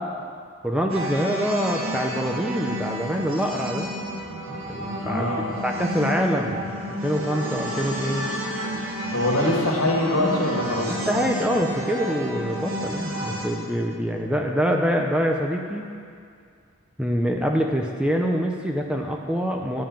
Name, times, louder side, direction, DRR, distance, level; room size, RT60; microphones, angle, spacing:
voice 1, 0.6-3.9 4.5-6.7 7.0-8.3 10.9-15.9 17.0-19.8, equal, 5° right, 2 dB, 0.5 m, -25 dB
sound 1, 0.9-13.5, equal, 75° right, 1.8 m, -31 dB
voice 2, 5.0-5.5 9.1-11.1, left 1 dB, 80° left, -2 dB, 1.8 m, -24 dB
10.5 x 5.4 x 7.4 m, 2.2 s
head